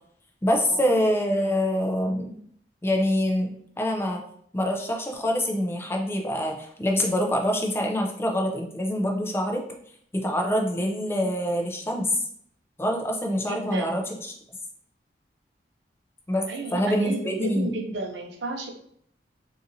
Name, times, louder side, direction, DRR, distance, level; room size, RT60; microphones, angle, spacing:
voice 1, 0.4-2.3 2.8-3.5 3.8-4.2 4.5-9.6 10.1-12.1 12.8-14.3 16.3-17.7, equal, 15° left, 2 dB, 0.4 m, -25 dB
voice 2, 13.4-14.1 16.5-18.7, right 2 dB, 90° right, 3 dB, 0.7 m, -33 dB
3.8 x 2.7 x 2.6 m, 0.64 s
head